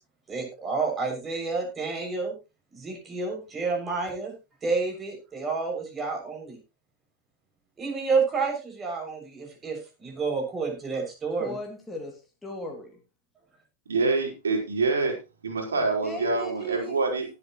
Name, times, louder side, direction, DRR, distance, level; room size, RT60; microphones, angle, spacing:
voice 1, 0.3-2.3 2.7-4.3 4.6-6.6 7.8-11.5, right 4 dB, 20° right, 1 dB, 6.6 m, -29 dB
voice 2, 11.4-13.0 16.0-17.0, right 1 dB, 10° left, 0 dB, 2.4 m, -37 dB
voice 3, 13.9-15.1 15.4-17.3, right 3 dB, 70° right, 2 dB, 4.4 m, -26 dB
19.0 x 8.4 x 3.1 m, 0.29 s
figure-of-eight pair, 90°, 0 cm